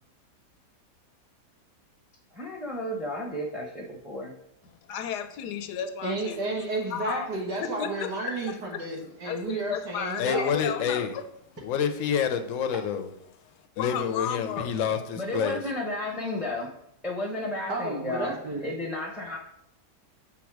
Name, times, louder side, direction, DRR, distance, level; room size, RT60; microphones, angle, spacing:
voice 1, 2.3-4.3 15.1-16.7 17.0-19.4, left 1 dB, ahead, 0.8 m, -33 dB
voice 2, 4.9-6.4 6.9-7.3 7.8-8.1 8.4-8.8 9.2-11.2 13.8-15.0, left 8 dB, 85° left, 1.2 m, -33 dB
voice 3, 6.0-10.6 17.7-18.7, right 2 dB, 90° right, 1.9 m, -32 dB
voice 4, 10.2-11.1 11.6-13.1 13.8-15.6, left 7 dB, 65° left, 0.9 m, -28 dB
6.0 x 3.8 x 4.7 m
omnidirectional pair, 1.8 m